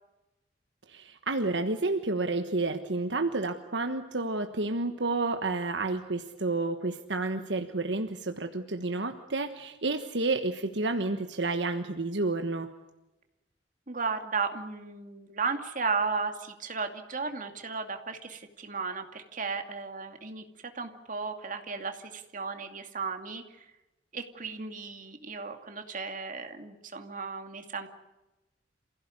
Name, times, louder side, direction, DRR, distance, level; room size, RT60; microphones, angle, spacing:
voice 1, 0.9-12.7, right 3 dB, 70° right, 6 dB, 1.4 m, -30 dB
voice 2, 13.9-20.4 20.7-23.7 24.1-27.9, right 4 dB, 45° right, 6 dB, 2.5 m, -35 dB
28.0 x 16.0 x 9.7 m, 1.0 s
head